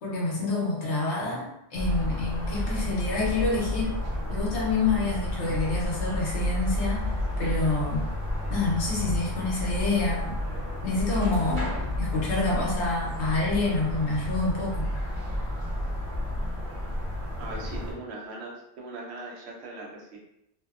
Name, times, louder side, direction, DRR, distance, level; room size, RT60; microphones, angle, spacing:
voice 1, 0.0-3.9 4.3-8.0 8.5-10.4 10.8-11.7 12.0-14.9, left 3 dB, 80° left, -3 dB, 1.0 m, -27 dB
sound 1, 1.7-17.9, left 1 dB, 45° right, 1.0 m, -31 dB
sound 2, 11.3-12.9, left 1 dB, 5° left, 0.8 m, -39 dB
voice 2, 17.4-20.2, right 2 dB, 75° right, -2 dB, 0.9 m, -40 dB
2.7 x 2.1 x 2.3 m, 0.83 s
omnidirectional pair, 1.1 m